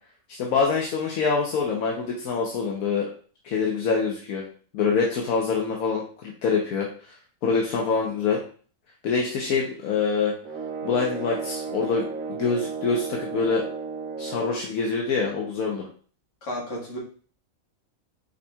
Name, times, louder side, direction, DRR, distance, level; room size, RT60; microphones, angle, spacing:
voice 1, 0.4-3.1 3.4-4.4 4.7-6.9 7.4-8.4 9.0-10.3 10.8-13.7 14.2-15.9, left 5 dB, 80° left, -1 dB, 1.2 m, -25 dB
sound 1, 10.4-14.7, right 5 dB, 75° right, 1.1 m, -34 dB
voice 2, 16.4-17.0, equal, 60° left, -3 dB, 1.8 m, -32 dB
5.4 x 4.2 x 2.3 m, 0.42 s
omnidirectional pair, 1.5 m